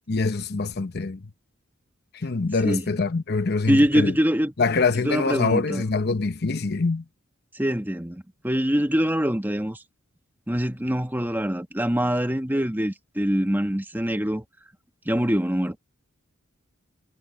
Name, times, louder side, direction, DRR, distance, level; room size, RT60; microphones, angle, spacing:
voice 1, 0.1-1.2 2.1-4.1 4.6-7.0, left 3 dB, 50° left, 0.8 m, -24 dB
voice 2, 3.7-4.5 5.0-5.8 7.5-9.8 10.5-14.4 15.0-15.8, equal, 10° right, 1.6 m, -24 dB
head